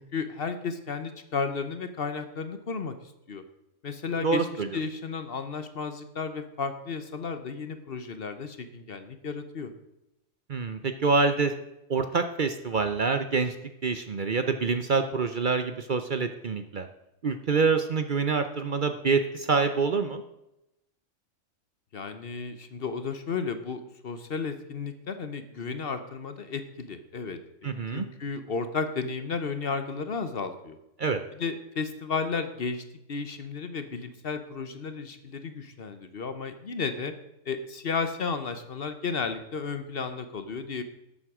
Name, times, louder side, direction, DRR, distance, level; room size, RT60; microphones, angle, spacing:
voice 1, 0.0-3.0 3.3-3.4 3.8-4.5 4.7-9.7 21.9-30.8 31.4-37.1 37.5-40.8, left 5 dB, 50° left, 9 dB, 1.1 m, -33 dB
voice 2, 4.2-4.7 10.5-11.5 11.9-13.5 13.8-16.9 17.2-20.2 27.6-28.1 31.0-31.2, right 4 dB, 50° right, 8 dB, 0.7 m, -26 dB
12.5 x 7.8 x 4.9 m, 0.88 s
omnidirectional pair, 1.3 m